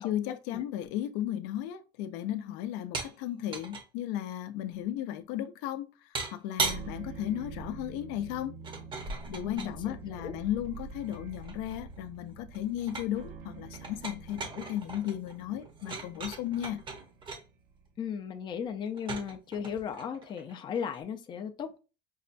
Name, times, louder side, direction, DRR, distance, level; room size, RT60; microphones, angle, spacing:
voice 1, 0.0-8.6 9.3-16.8, left 12 dB, 75° left, 0.5 m, -35 dB
sound 1, 2.9-3.2 3.4-3.9 6.2-6.9 8.6-9.8 10.8-12.0 12.3-13.2 13.7-17.4 18.9-21.0, right 4 dB, 25° right, 0.7 m, -38 dB
sound 2, 6.6-18.0, right 5 dB, 55° right, 0.8 m, -47 dB
voice 2, 9.4-10.3 18.0-21.8, left 7 dB, 20° left, 0.4 m, -36 dB
5.4 x 2.1 x 2.5 m
cardioid pair, 155°, 21 cm